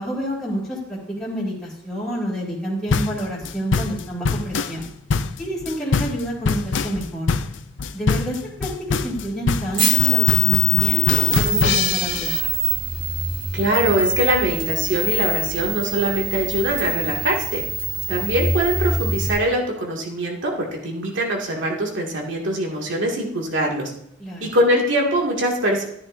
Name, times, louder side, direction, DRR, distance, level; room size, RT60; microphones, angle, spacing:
voice 1, 0.0-4.8 5.4-7.3 7.9-8.7 9.0-12.5 24.2-24.5, equal, 5° left, -11 dB, 2.5 m, -28 dB
sound 1, 2.9-12.4, left 4 dB, 75° left, 0.5 m, -24 dB
sound 2, 9.7-19.3, left 1 dB, 45° right, 2.9 m, -23 dB
voice 2, 13.5-17.6 18.1-23.9 24.4-25.9, right 1 dB, 80° right, -1 dB, 2.3 m, -22 dB
13.5 x 10.0 x 2.7 m, 0.75 s
head